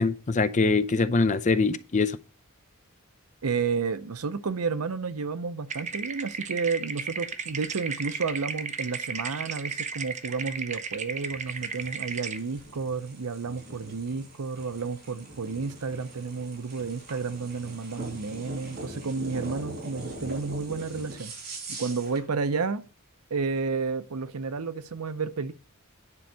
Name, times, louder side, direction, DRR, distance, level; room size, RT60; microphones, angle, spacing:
voice 1, 0.0-2.2, left 3 dB, 35° left, 0.5 m, -23 dB
voice 2, 3.4-21.3 21.7-22.8 23.3-25.5, right 4 dB, 80° right, 0.7 m, -31 dB
sound 1, 5.7-12.4, right 5 dB, 30° right, 0.7 m, -35 dB
sound 2, 11.3-22.3, right 1 dB, 45° right, 4.6 m, -42 dB
9.9 x 4.5 x 6.3 m
head